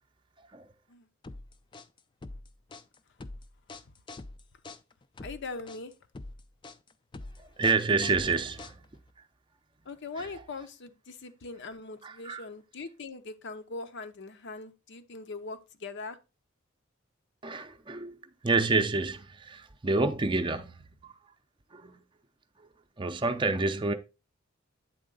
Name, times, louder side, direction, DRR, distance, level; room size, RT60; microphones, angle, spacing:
sound 1, 1.2-9.1, left 2 dB, 25° left, 0.4 m, -45 dB
voice 1, 5.2-5.9 9.9-16.2, left 3 dB, 60° left, 0.7 m, -41 dB
voice 2, 7.4-8.9 10.2-10.4 12.0-12.5 17.4-21.2 21.7-22.0 22.6-22.7 23.0-23.9, right 3 dB, 25° right, 0.6 m, -29 dB
8.5 x 3.7 x 3.8 m
head